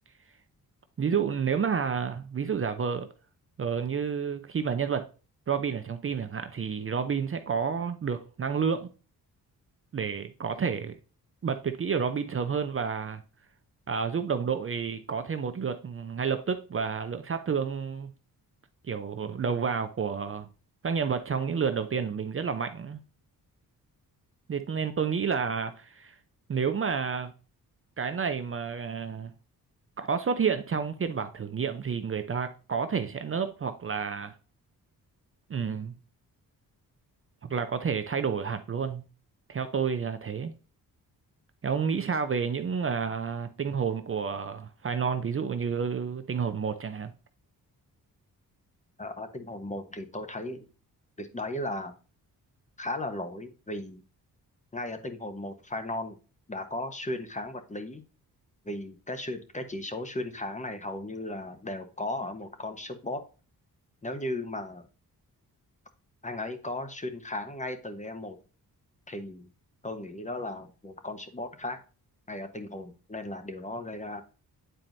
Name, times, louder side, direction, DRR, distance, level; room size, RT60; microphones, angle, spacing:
voice 1, 1.0-3.1 3.6-5.1 5.5-8.9 9.9-10.9 11.4-13.2 13.9-18.1 18.8-20.5 20.8-23.0 24.5-26.2 26.5-27.3 28.0-29.3 30.0-34.3 35.5-36.0 37.5-39.0 39.5-40.5 41.6-47.1, right 6 dB, 35° right, 0.6 m, -30 dB
voice 2, 49.0-50.6 51.2-51.9 52.8-54.0 54.7-56.2 56.5-58.0 58.6-63.2 64.0-64.9 66.2-68.4 69.1-69.5 69.8-71.8 72.3-74.2, left 1 dB, 20° left, 1.0 m, -36 dB
9.1 x 4.3 x 2.6 m
cardioid pair, 105°, 36 cm